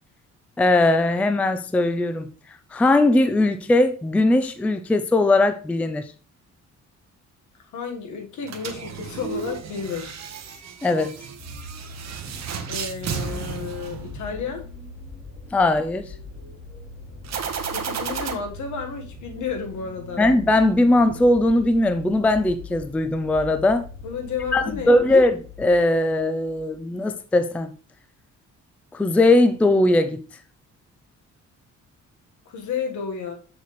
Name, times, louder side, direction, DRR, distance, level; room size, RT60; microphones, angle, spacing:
voice 1, 0.6-2.3 2.7-6.1 10.8-11.1 15.5-16.1 20.2-23.8 24.5-27.7 28.9-30.2, left 2 dB, 5° left, 0.3 m, -19 dB
voice 2, 7.7-10.2 12.7-14.6 17.7-20.3 24.0-25.1 32.4-33.3, left 6 dB, 75° left, 1.5 m, -32 dB
sound 1, 8.4-14.6 17.2-18.3, right 7 dB, 60° right, 1.1 m, -33 dB
sound 2, 11.2-26.8 27.6-27.7, left 3 dB, 25° left, 3.1 m, -41 dB
6.7 x 6.6 x 3.1 m
cardioid pair, 165°, 30 cm